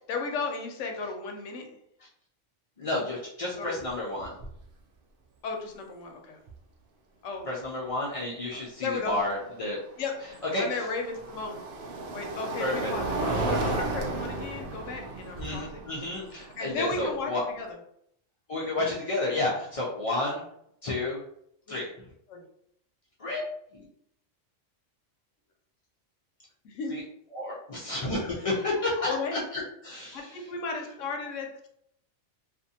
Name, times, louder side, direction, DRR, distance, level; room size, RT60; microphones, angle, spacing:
voice 1, 0.1-1.7 3.5-3.8 5.4-6.4 7.2-7.5 8.5-9.2 10.0-10.1 10.6-11.6 12.1-15.8 16.6-17.7 18.6-18.7 21.7-21.8 22.3-22.4 26.6-27.0 29.0-29.4 30.1-31.7, left 4 dB, 90° left, 3 dB, 1.0 m, -34 dB
voice 2, 2.8-4.3 7.5-9.8 10.5-10.7 12.6-12.9 15.4-17.4 18.5-20.4 20.8-21.2 21.7-21.9 23.2-23.4 23.7-23.8 26.9-27.0 27.3-30.4, left 2 dB, 65° left, -5 dB, 0.3 m, -31 dB
sound 1, 3.8-3.9 4.2-4.6 6.5-6.6 9.6-17.7, right 2 dB, 60° right, 0.6 m, -34 dB
2.5 x 2.4 x 2.6 m, 0.72 s
omnidirectional pair, 1.3 m